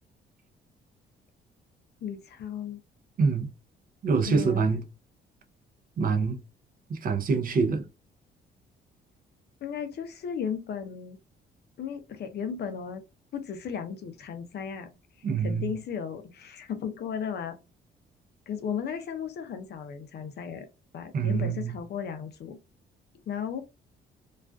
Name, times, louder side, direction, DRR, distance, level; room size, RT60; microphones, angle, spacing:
voice 1, 2.0-2.8 4.3-4.7 9.6-11.2 11.8-13.0 13.3-14.9 15.4-17.6 18.5-20.7 20.9-22.6 23.3-23.7, left 7 dB, 55° left, 0.5 m, -35 dB
voice 2, 3.2-3.5 4.0-4.8 6.0-6.4 6.9-7.9 15.2-15.7 21.1-21.7, right 5 dB, 45° right, 0.5 m, -25 dB
2.3 x 2.3 x 2.3 m
cardioid pair, 90°, 20 cm